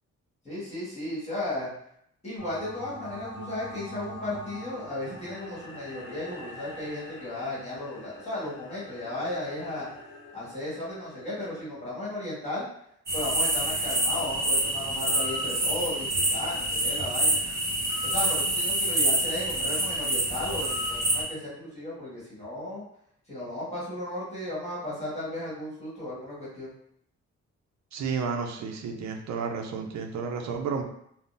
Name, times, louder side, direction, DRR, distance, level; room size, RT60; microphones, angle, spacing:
voice 1, 0.4-1.7 2.2-9.9 10.3-12.7 13.1-17.4 18.0-22.8 23.3-26.7, left 1 dB, 20° left, -9 dB, 1.3 m, -35 dB
sound 1, 2.4-11.6, equal, 40° left, 0.8 m, -45 dB
sound 2, 13.1-21.2, right 1 dB, 30° right, 0.9 m, -27 dB
voice 2, 27.9-30.8, right 5 dB, 65° right, 3 dB, 0.5 m, -31 dB
3.6 x 2.0 x 2.5 m, 0.73 s
wide cardioid pair, 180°, 30 cm